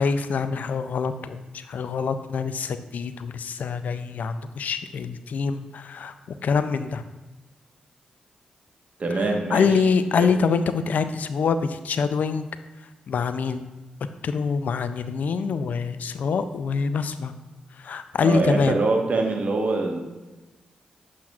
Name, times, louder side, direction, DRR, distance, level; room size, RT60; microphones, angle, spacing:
voice 1, 0.0-7.0 9.1-12.5 13.1-13.7 14.2-17.3 17.8-18.8, left 5 dB, 70° left, 11 dB, 0.4 m, -25 dB
voice 2, 9.0-9.7 10.2-10.3 18.2-20.0, right 3 dB, 55° right, 2 dB, 1.2 m, -24 dB
7.7 x 5.7 x 2.4 m, 1.1 s
supercardioid pair, 45°, 3 cm